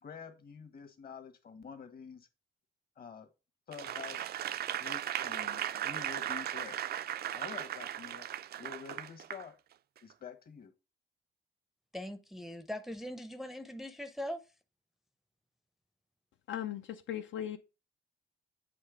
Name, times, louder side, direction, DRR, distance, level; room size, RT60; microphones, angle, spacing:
voice 1, 0.0-2.3 3.0-3.3 3.7-4.3 4.7-6.9 7.3-8.3 8.6-9.6 10.0-10.7, left 6 dB, 50° left, 1.5 m, -48 dB
Applause / Crowd, 3.7-9.4 10.0-10.1, right 11 dB, 55° right, 0.4 m, -37 dB
voice 2, 11.9-14.4, left 1 dB, ahead, 0.6 m, -41 dB
voice 3, 16.5-17.6, left 10 dB, 70° left, 0.7 m, -38 dB
7.8 x 3.2 x 5.1 m
cardioid pair, 90°, 20 cm